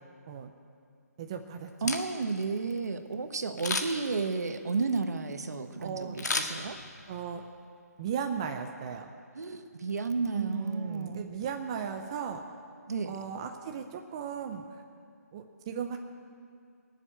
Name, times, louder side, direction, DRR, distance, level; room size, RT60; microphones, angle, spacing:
voice 1, 1.2-1.9 5.8-6.2 7.1-7.4 8.0-9.1 10.3-12.4 13.1-14.6 15.3-16.0, right 7 dB, 20° right, 5 dB, 0.5 m, -36 dB
Camera, 1.7-2.4 3.6-4.1 6.2-7.1 7.5-7.6, left 3 dB, 85° left, 1.6 m, -33 dB
voice 2, 1.8-6.8 9.3-11.2 12.9-13.2, right 4 dB, 70° right, 8 dB, 1.2 m, -32 dB
19.0 x 7.3 x 9.0 m, 2.2 s
hypercardioid pair, 170°, 9 cm